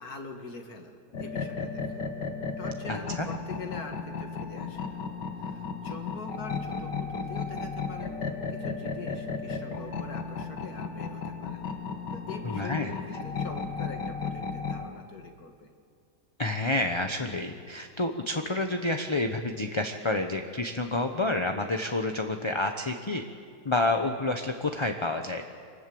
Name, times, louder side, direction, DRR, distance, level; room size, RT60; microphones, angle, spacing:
voice 1, 0.0-2.0 2.6-5.0 5.4-8.2 8.5-11.8 12.1-15.7, left 4 dB, 60° left, 4 dB, 2.2 m, -43 dB
sound 1, 1.1-14.8, left 5 dB, 90° left, 2.3 m, -35 dB
voice 2, 2.9-3.3 12.4-12.9 16.4-23.2 23.6-25.4, left 2 dB, 25° left, 5 dB, 0.7 m, -29 dB
25.5 x 19.5 x 7.8 m, 2.2 s
omnidirectional pair, 1.8 m